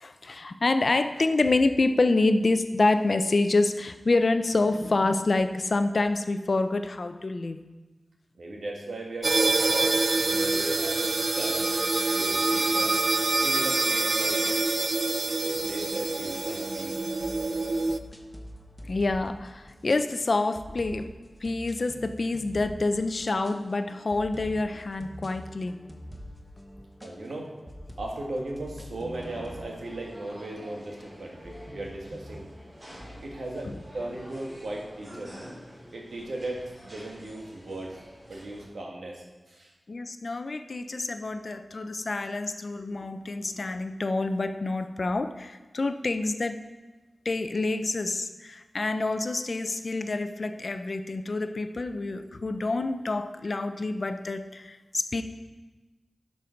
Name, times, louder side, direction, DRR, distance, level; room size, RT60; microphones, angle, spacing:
voice 1, 0.0-7.6 15.3-15.4 18.9-21.1 21.4-25.8 39.9-46.6 47.2-55.2, left 2 dB, 55° left, 9 dB, 0.5 m, -27 dB
voice 2, 8.3-13.0 13.4-14.6 15.4-16.9 27.0-27.5 28.0-32.5 33.2-35.3 35.9-38.0 38.3-39.7, right 1 dB, 80° right, -1 dB, 1.7 m, -37 dB
sound 1, 9.2-18.0, right 3 dB, 55° right, 0.4 m, -26 dB
sound 2, 15.5-33.8, equal, 10° left, 1.1 m, -46 dB
sound 3, 29.2-38.7, equal, 30° right, 3.3 m, -48 dB
11.5 x 5.4 x 4.5 m, 1.2 s
wide cardioid pair, 70°, 0 cm